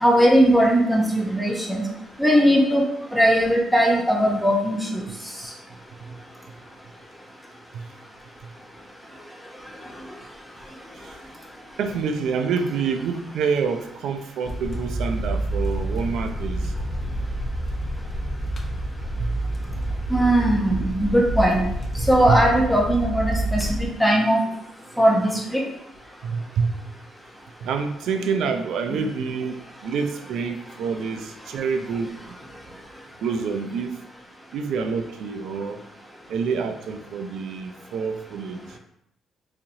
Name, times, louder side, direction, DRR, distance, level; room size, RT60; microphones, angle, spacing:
voice 1, 0.0-1.8 2.2-2.8 3.1-5.1 20.1-21.6 22.1-24.4 25.0-25.6 28.9-29.0, equal, ahead, -2 dB, 0.8 m, -19 dB
voice 2, 11.8-16.7 19.2-19.3 22.0-22.4 26.2-26.7 27.6-32.4 33.2-34.0 34.5-35.8 36.3-38.8, right 5 dB, 80° right, 6 dB, 0.4 m, -27 dB
sound 1, 14.4-23.9, right 1 dB, 40° left, 0.7 m, -28 dB
4.0 x 2.9 x 2.7 m, 0.76 s
cardioid pair, 90°, 0 cm